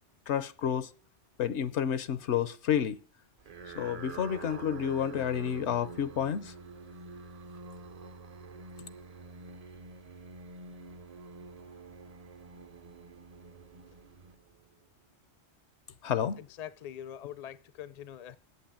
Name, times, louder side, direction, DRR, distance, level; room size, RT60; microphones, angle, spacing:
voice 1, 0.3-0.9 1.4-3.0 3.7-6.5 16.0-16.4, left 9 dB, 75° left, 1.0 m, -30 dB
sound 1, 3.4-14.9, right 4 dB, 40° right, 0.6 m, -47 dB
voice 2, 16.4-18.4, left 10 dB, 45° left, 0.6 m, -43 dB
8.6 x 7.5 x 8.7 m
omnidirectional pair, 1.2 m